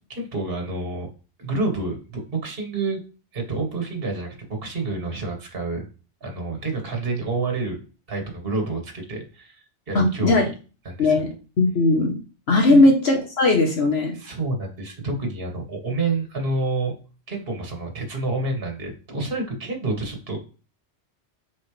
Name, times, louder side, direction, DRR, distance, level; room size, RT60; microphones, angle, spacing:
voice 1, 0.1-1.1 1.4-3.0 3.3-5.8 6.2-7.8 8.1-10.5 10.8-11.2 12.7-12.9 14.1-16.9 17.3-20.4, right 3 dB, 55° right, 2 dB, 1.9 m, -28 dB
voice 2, 9.9-10.4 11.0-11.3 11.6-12.1 12.5-14.1, left 2 dB, 65° left, 1 dB, 1.4 m, -18 dB
8.3 x 4.3 x 3.3 m, 0.35 s
omnidirectional pair, 1.2 m